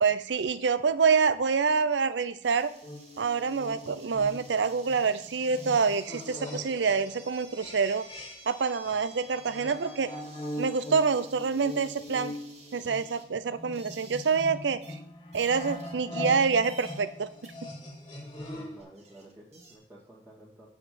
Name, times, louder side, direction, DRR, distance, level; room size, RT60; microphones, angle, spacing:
voice 1, 0.0-2.7 3.2-8.0 8.5-10.1 10.6-12.3 12.7-15.0 15.3-17.5, right 5 dB, 80° right, 15 dB, 0.5 m, -26 dB
sound 1, 2.4-14.5 14.8-15.0 15.3-16.3 16.6-17.1 17.4-17.5 18.5-18.6 18.8-19.8, right 3 dB, 40° right, 1.9 m, -52 dB
sound 2, 2.8-8.6 8.8-18.8, left 1 dB, 25° left, 1.8 m, -41 dB
voice 2, 18.2-20.7, right 1 dB, 15° right, -8 dB, 2.0 m, -52 dB
8.6 x 5.0 x 7.6 m, 0.68 s
head